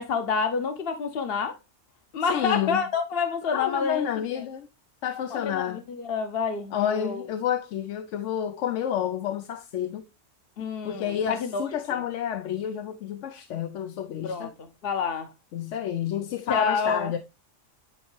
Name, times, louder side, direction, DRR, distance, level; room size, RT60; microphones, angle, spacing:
voice 1, 0.0-1.6 2.1-4.1 5.3-5.6 6.0-7.2 10.6-12.0 14.2-15.3 16.5-17.1, left 5 dB, 60° left, 0.9 m, -28 dB
voice 2, 2.2-2.8 3.5-4.7 5.0-5.8 6.7-10.0 10.8-14.5 15.5-17.2, left 9 dB, 90° left, 1.0 m, -30 dB
9.5 x 4.3 x 3.1 m
omnidirectional pair, 1.2 m